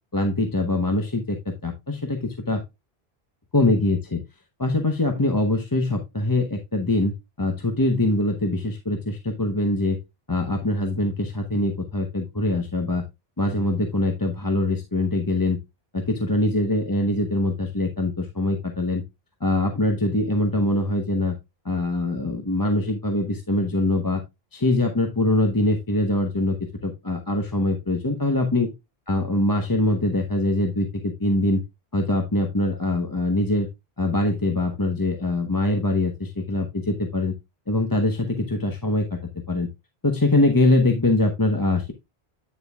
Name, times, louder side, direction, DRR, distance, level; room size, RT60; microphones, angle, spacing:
voice 1, 0.1-2.6 3.5-4.2 4.6-7.1 7.4-10.0 10.3-13.0 13.4-15.6 15.9-19.0 19.4-21.4 21.6-24.2 24.5-26.6 26.8-28.7 29.1-31.6 31.9-33.7 34.0-37.3 37.7-39.2 39.5-39.7 40.0-41.9, left 2 dB, 20° left, 3 dB, 0.9 m, -23 dB
9.1 x 6.9 x 2.3 m, 0.21 s
omnidirectional pair, 1.1 m